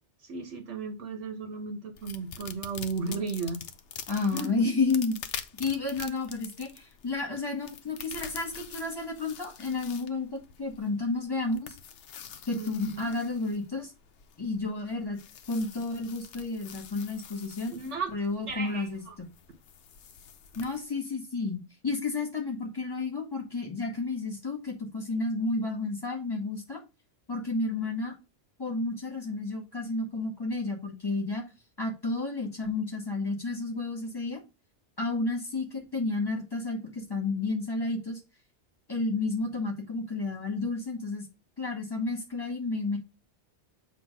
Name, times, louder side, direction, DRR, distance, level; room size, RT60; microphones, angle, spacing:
voice 1, 0.2-3.6 4.1-4.7 12.5-13.1 17.7-18.1 18.5-19.1, right 4 dB, 80° right, 1.4 m, -35 dB
sound 1, 2.0-20.8, left 8 dB, 80° left, 1.0 m, -46 dB
voice 2, 4.1-5.2 5.6-11.8 12.5-13.9 14.4-15.2 15.5-17.8 18.1-19.3 20.6-26.8 27.3-28.1 28.6-31.4 31.8-34.4 35.0-38.2 38.9-41.2 41.6-43.0, left 3 dB, 20° left, 2.1 m, -31 dB
7.7 x 3.1 x 5.6 m
omnidirectional pair, 1.2 m